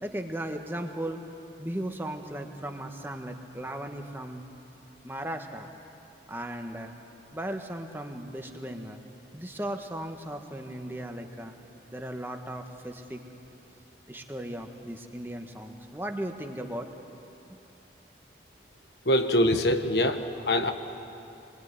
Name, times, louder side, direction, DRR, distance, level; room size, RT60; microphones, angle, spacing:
voice 1, 0.0-1.2 1.6-4.4 5.0-5.7 6.3-6.9 7.3-9.0 9.3-11.5 11.9-13.2 14.1-16.9, right 1 dB, 10° right, 4 dB, 1.5 m, -36 dB
voice 2, 19.0-20.7, left 1 dB, 70° left, 7 dB, 1.3 m, -24 dB
27.0 x 22.0 x 9.6 m, 2.9 s
head